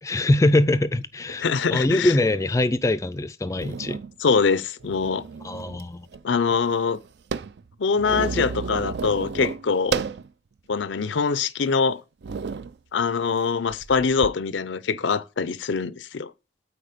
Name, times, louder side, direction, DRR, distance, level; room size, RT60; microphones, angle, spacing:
voice 1, 0.0-4.0 5.4-6.1, left 1 dB, 15° left, 0.3 m, -23 dB
voice 2, 1.4-2.1 4.2-5.2 6.2-7.0 7.8-10.0 10.7-12.0 12.9-16.3, left 5 dB, 85° left, 0.6 m, -23 dB
sound 1, 2.9-3.0 3.5-4.1 4.8-5.9 6.1-6.2 6.5-10.3 10.8-10.9 11.6-11.8 12.2-12.7 13.7-14.3, right 5 dB, 65° right, 0.4 m, -32 dB
8.6 x 4.3 x 5.1 m
head